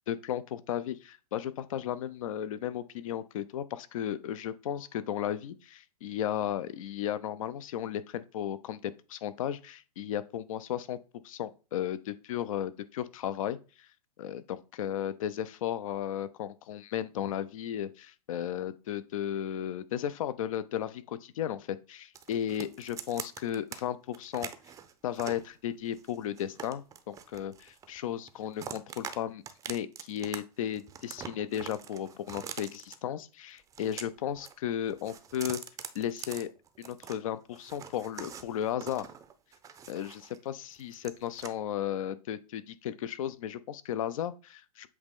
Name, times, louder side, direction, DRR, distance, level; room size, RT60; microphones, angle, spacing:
voice 1, 0.1-11.0 11.2-13.9 14.2-24.5 25.0-35.6 35.9-36.5 36.8-39.1 39.9-44.9, left 10 dB, 55° left, 0.7 m, -35 dB
sound 1, 22.2-23.8 24.1-25.5 26.0-28.0 28.3-29.2 29.5-30.4 30.6-33.0 33.6-34.6 34.8-37.2 37.5-40.4 40.7-41.5, right 8 dB, 15° right, 0.6 m, -44 dB
7.8 x 3.3 x 3.7 m
hypercardioid pair, 110°, 20 cm